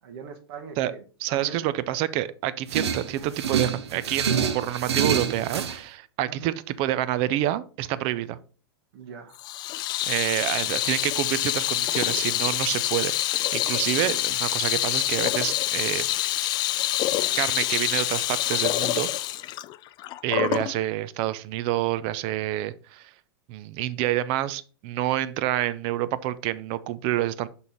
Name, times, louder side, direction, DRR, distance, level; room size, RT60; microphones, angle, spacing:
voice 1, 0.0-1.7 6.3-6.5 8.9-9.4, right 5 dB, 65° right, 5 dB, 1.2 m, -41 dB
voice 2, 1.2-8.4 10.1-16.1 17.4-19.1 20.2-23.1 23.5-27.5, right 13 dB, 45° right, 16 dB, 0.5 m, -28 dB
sound 1, 2.7-5.8, right 7 dB, 85° right, 0.9 m, -27 dB
Water tap faucet / Sink (filling or washing), 9.4-20.7, left 15 dB, 30° left, 0.3 m, -26 dB
6.1 x 5.5 x 3.9 m, 0.39 s
hypercardioid pair, 115°, 14 cm